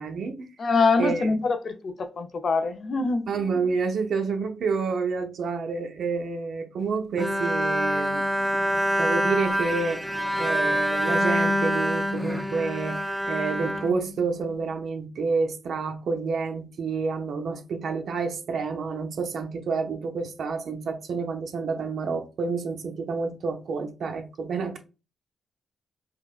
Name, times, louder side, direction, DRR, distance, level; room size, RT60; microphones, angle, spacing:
voice 1, 0.0-0.5 1.0-1.4 3.3-8.5 8.9-10.1 10.4-24.8, right 4 dB, 70° right, 0.7 m, -29 dB
voice 2, 0.6-3.3, left 4 dB, 55° left, 0.6 m, -24 dB
Bowed string instrument, 7.2-14.6, equal, 5° right, 0.4 m, -26 dB
4.7 x 2.1 x 2.4 m
cardioid pair, 80°, 0 cm